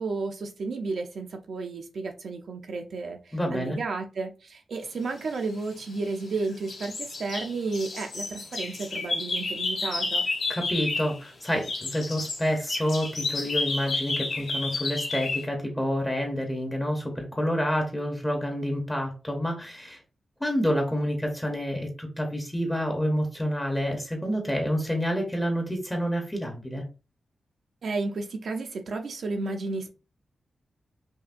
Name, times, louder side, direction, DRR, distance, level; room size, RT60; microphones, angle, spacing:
voice 1, 0.0-10.2 27.8-29.9, right 3 dB, 60° right, 0.5 m, -32 dB
voice 2, 3.3-3.8 10.5-20.0 20.4-26.8, equal, 10° left, 0.7 m, -28 dB
sound 1, 5.5-6.3 6.7-11.2 11.4-15.4, left 3 dB, 70° left, 1.4 m, -31 dB
5.4 x 2.1 x 2.5 m
wide cardioid pair, 160°, 0 cm